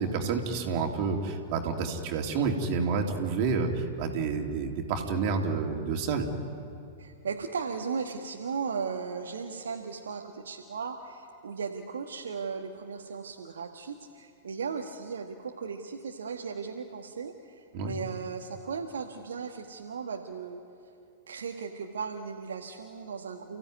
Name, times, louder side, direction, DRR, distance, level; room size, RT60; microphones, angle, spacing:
voice 1, 0.0-6.3 17.7-17.9, right 5 dB, 45° right, 2 dB, 3.1 m, -29 dB
voice 2, 7.0-20.6 21.3-23.6, right 5 dB, 70° right, 3 dB, 1.5 m, -36 dB
30.0 x 15.5 x 9.4 m, 2.5 s
figure-of-eight pair, 95°, 0 cm